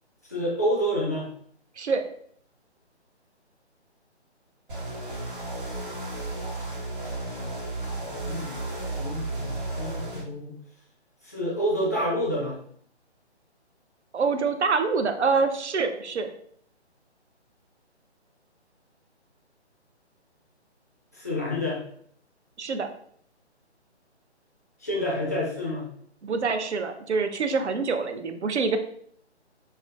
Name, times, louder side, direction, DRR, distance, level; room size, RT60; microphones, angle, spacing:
voice 1, 0.3-1.3 8.0-8.5 9.0-10.5 11.2-12.6 21.1-21.8 24.8-25.9, equal, 15° left, -5 dB, 0.4 m, -28 dB
sound 1, 4.7-10.2, right 2 dB, 45° right, 1.3 m, -33 dB
voice 2, 14.1-16.3 22.6-22.9 26.2-28.8, right 4 dB, 75° right, 8 dB, 0.6 m, -26 dB
5.5 x 2.1 x 2.3 m, 0.63 s
figure-of-eight pair, 145°, 34 cm